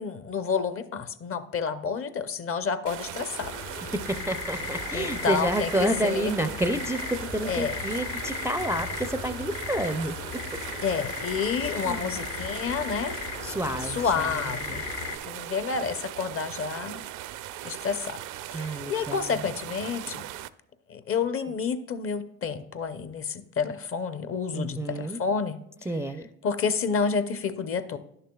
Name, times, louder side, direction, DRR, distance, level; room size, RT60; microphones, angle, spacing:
voice 1, 0.0-3.6 4.9-6.3 7.4-7.8 10.8-13.3 13.9-14.8 15.2-17.0 17.6-18.2 18.5-20.3 20.9-25.6 26.4-28.0, left 5 dB, 40° left, 12 dB, 0.7 m, -29 dB
sound 1, 2.9-20.5, right 13 dB, 65° right, 0.5 m, -39 dB
sound 2, 3.4-15.2, left 6 dB, 65° left, 1.1 m, -36 dB
voice 2, 3.9-10.1 11.7-12.1 13.4-14.8 18.5-19.4 24.5-25.2 25.9-26.3, right 1 dB, 10° right, 8 dB, 0.4 m, -30 dB
10.5 x 6.7 x 2.3 m, 0.81 s
supercardioid pair, 70°, 33 cm